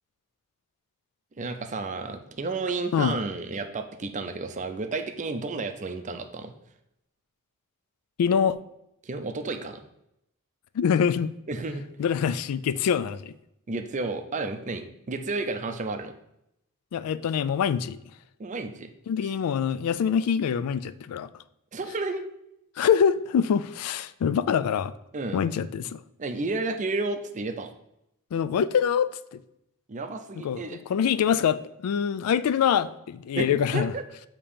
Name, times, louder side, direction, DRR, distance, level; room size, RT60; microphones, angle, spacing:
voice 1, 1.4-6.5 9.0-9.8 11.5-11.8 13.7-16.1 18.4-18.9 21.7-22.2 25.1-25.4 26.2-27.7 29.9-30.8 33.3-33.5 33.7-34.0, right 3 dB, 35° right, 7 dB, 0.5 m, -31 dB
voice 2, 8.2-8.6 10.7-11.3 12.0-13.3 16.9-18.0 19.1-21.3 22.8-24.9 25.3-26.0 28.3-29.4 30.3-33.9, left 7 dB, 75° left, 15 dB, 0.3 m, -25 dB
7.1 x 2.9 x 5.0 m, 0.80 s
head